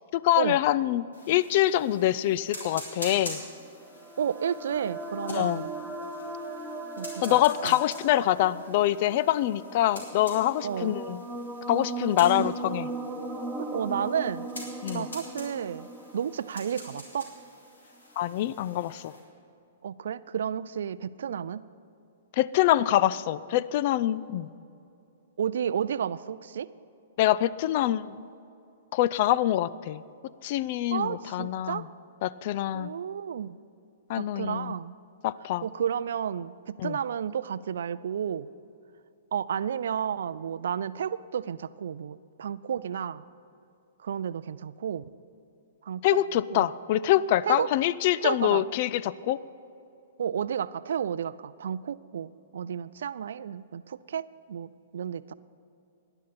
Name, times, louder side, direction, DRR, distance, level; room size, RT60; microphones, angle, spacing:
voice 1, 0.1-3.4 5.3-5.6 7.2-11.2 11.7-12.9 14.8-15.1 18.2-19.1 22.3-24.5 27.2-28.2 28.9-30.0 30.4-31.8 32.2-32.9 34.1-34.7 35.2-35.6 36.8-37.0 46.0-49.4, left 13 dB, 45° left, 18 dB, 0.4 m, -25 dB
sound 1, 1.1-19.2, left 1 dB, 75° left, 3.7 m, -46 dB
sound 2, 3.4-17.5, right 2 dB, 5° right, 1.0 m, -38 dB
voice 2, 4.2-5.7 7.0-7.8 10.6-11.0 12.4-12.5 13.6-14.5 14.9-15.9 16.1-17.3 19.8-21.6 25.4-26.7 30.9-31.8 32.7-33.6 34.2-34.9 35.6-38.5 39.3-43.2 44.0-45.0 45.8-46.0 46.5-46.7 47.4-47.7 48.2-48.6 50.2-55.3, right 8 dB, 65° right, 17 dB, 0.4 m, -32 dB
19.0 x 11.0 x 4.2 m, 2.7 s
figure-of-eight pair, 115°, 0 cm